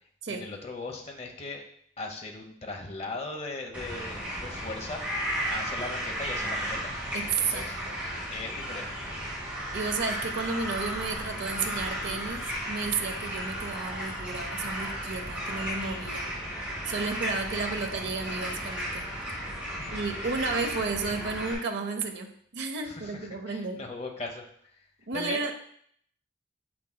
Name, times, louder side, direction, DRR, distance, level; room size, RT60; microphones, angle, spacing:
voice 1, 0.3-1.6 2.0-6.9 7.4-7.7 8.3-9.1 19.7-20.0 20.8-20.9 22.8-23.1 23.5-24.4 25.1-25.5, left 3 dB, 35° left, 3 dB, 0.8 m, -38 dB
sound 1, 3.7-21.5, equal, 10° right, 2.2 m, -34 dB
voice 2, 7.1-8.0 9.7-16.3 16.8-19.1 19.9-23.8 25.1-25.5, right 4 dB, 70° right, 5 dB, 0.7 m, -32 dB
7.4 x 5.9 x 2.2 m, 0.65 s
head